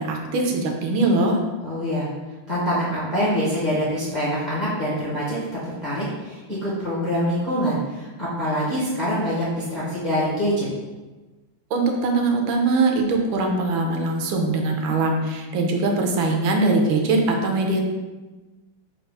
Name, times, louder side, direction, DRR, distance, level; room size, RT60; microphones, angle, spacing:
voice 1, 0.0-1.4 11.7-17.8, right 3 dB, 80° right, 2 dB, 1.4 m, -21 dB
voice 2, 1.6-2.1 2.5-5.4 5.6-10.7, equal, 35° left, -8 dB, 0.7 m, -25 dB
4.6 x 2.3 x 4.7 m, 1.2 s
omnidirectional pair, 2.2 m